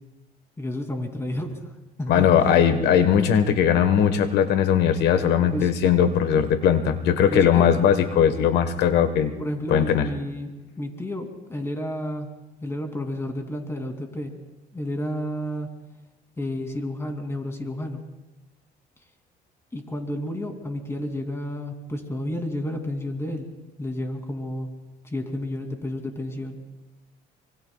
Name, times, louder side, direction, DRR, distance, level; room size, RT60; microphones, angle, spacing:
voice 1, 0.6-1.6 2.0-2.7 5.5-5.7 7.3-7.7 9.4-12.3 12.6-14.3 14.7-15.7 16.4-18.0 19.7-23.5 23.8-24.7 25.0-26.6, left 1 dB, 15° left, 4 dB, 2.7 m, -31 dB
voice 2, 2.1-9.4 9.7-10.1, left 8 dB, 80° left, 9 dB, 1.3 m, -19 dB
25.5 x 24.0 x 2.3 m, 1.1 s
cardioid pair, 110°, 17 cm